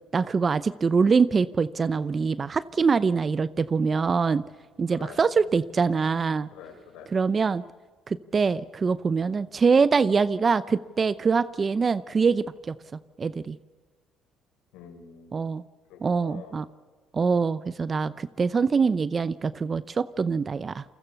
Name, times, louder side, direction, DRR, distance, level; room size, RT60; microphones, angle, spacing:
voice 1, 0.1-4.4 4.8-6.5 7.1-7.6 8.1-12.8 13.2-13.6 15.3-15.6 16.0-16.7 17.1-20.8, right 5 dB, 30° right, 16 dB, 0.6 m, -24 dB
voice 2, 6.5-7.1 14.7-15.5 15.9-16.5, left 7 dB, 85° left, 4 dB, 6.1 m, -46 dB
28.5 x 22.0 x 7.0 m, 1.4 s
cardioid pair, 100°, 0 cm